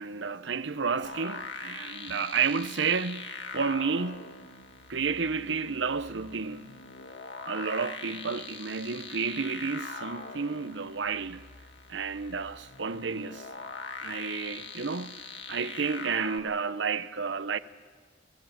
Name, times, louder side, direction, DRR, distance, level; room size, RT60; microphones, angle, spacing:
voice 1, 0.0-4.2 4.9-6.8 7.5-11.4 11.9-13.5 14.0-15.2 15.5-17.6, right 5 dB, 65° right, 0.7 m, -31 dB
sound 1, 1.0-16.4, left 4 dB, 65° left, 1.8 m, -42 dB
23.0 x 17.5 x 8.0 m
head